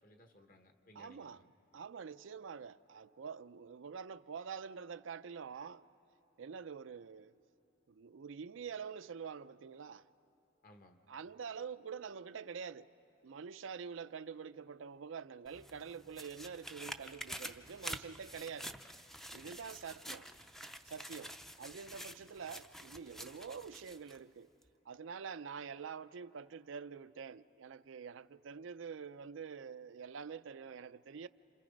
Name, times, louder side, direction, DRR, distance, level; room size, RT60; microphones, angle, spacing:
voice 1, 0.0-1.5 10.6-11.0 19.3-19.7 22.1-22.3, left 1 dB, 45° left, 1.3 m, -62 dB
voice 2, 1.0-1.4 1.7-5.8 6.4-7.3 7.9-10.0 11.1-12.9 13.2-18.7 19.3-20.3 20.8-24.5 24.9-31.3, right 6 dB, 85° right, 0.5 m, -46 dB
sound 1, 15.5-24.2 24.6-24.7, equal, ahead, 0.5 m, -48 dB
29.5 x 27.5 x 5.2 m
head